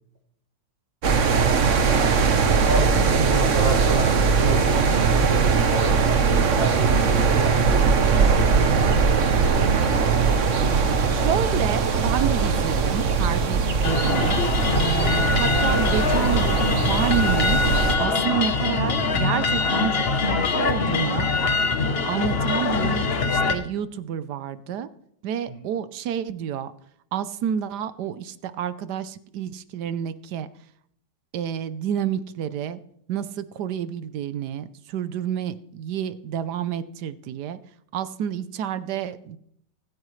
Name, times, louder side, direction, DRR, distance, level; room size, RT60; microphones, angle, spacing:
sound 1, 1.0-18.0, right 5 dB, 45° right, 1.2 m, -20 dB
voice 1, 1.8-8.6 25.5-25.6, right 1 dB, 25° right, -3 dB, 3.9 m, -32 dB
voice 2, 11.1-14.4 14.7-17.6 18.0-21.3 22.0-24.9 25.2-26.7 27.1-30.5 31.3-32.8 33.1-37.6 37.9-39.4, right 9 dB, 70° right, 14 dB, 1.2 m, -29 dB
Bells and drums, 13.8-23.5, left 4 dB, 40° left, 1.0 m, -23 dB
24.5 x 9.6 x 3.2 m, 0.71 s
omnidirectional pair, 2.0 m